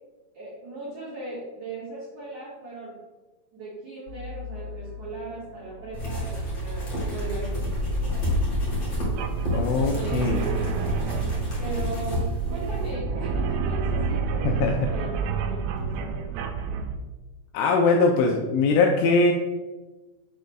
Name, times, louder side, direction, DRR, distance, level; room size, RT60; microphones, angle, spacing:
voice 1, 0.3-3.0 3.5-8.3 9.9-10.9 11.6-16.2, right 3 dB, 65° right, -9 dB, 1.8 m, -38 dB
sound 1, 4.1-15.8, right 2 dB, 45° right, 1.8 m, -35 dB
sound 2, 5.9-12.9, left 1 dB, 70° left, 1.1 m, -29 dB
sound 3, 9.0-17.0, right 5 dB, 85° right, 3.3 m, -30 dB
voice 2, 9.5-10.4 14.4-14.9 17.5-19.3, left 3 dB, 90° left, 1 dB, 2.7 m, -21 dB
7.7 x 6.5 x 2.3 m, 1.2 s
omnidirectional pair, 6.0 m